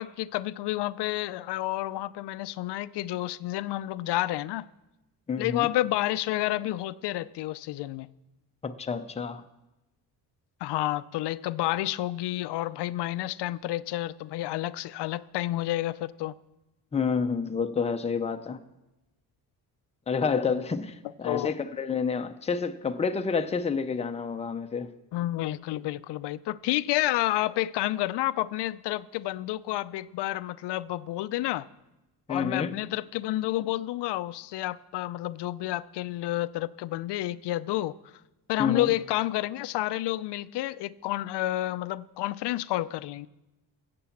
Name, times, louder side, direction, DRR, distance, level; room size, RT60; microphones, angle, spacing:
voice 1, 0.0-4.7 5.4-8.1 10.6-16.3 21.2-21.5 25.1-31.7 32.3-37.9 38.5-43.3, left 15 dB, 90° left, 0.5 m, -30 dB
voice 2, 5.3-5.7 8.6-9.4 16.9-18.6 20.1-24.9 32.3-32.8 38.6-38.9, left 5 dB, 15° left, 0.5 m, -29 dB
16.0 x 6.9 x 7.1 m
cardioid pair, 150°, 40 cm